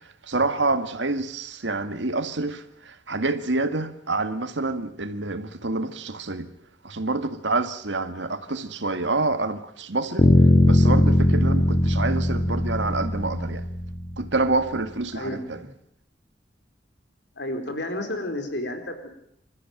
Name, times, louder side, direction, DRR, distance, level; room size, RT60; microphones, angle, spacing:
voice 1, 0.2-6.5 6.8-10.3 10.7-13.6 14.2-15.6, right 3 dB, 90° right, 2.0 m, -27 dB
sound 1, 10.2-14.1, left 1 dB, 40° left, 2.4 m, -19 dB
voice 2, 15.1-15.7 17.4-19.1, left 1 dB, 70° left, 4.3 m, -31 dB
26.5 x 14.0 x 9.1 m
head